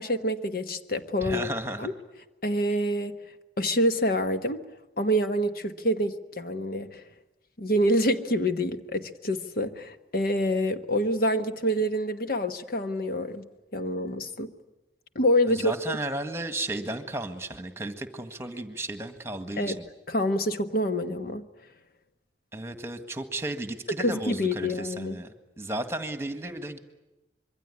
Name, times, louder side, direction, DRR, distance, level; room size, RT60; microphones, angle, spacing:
voice 1, 0.0-1.5 1.8-1.9 2.4-3.2 3.6-4.6 5.0-7.0 7.6-13.5 13.7-14.5 15.1-16.0 19.6-19.8 20.1-21.5 23.9-25.2, equal, 55° left, 1.3 m, -27 dB
voice 2, 1.2-1.9 15.5-19.8 22.5-25.3 25.6-26.8, right 1 dB, 15° right, 1.8 m, -34 dB
26.0 x 23.0 x 9.8 m
head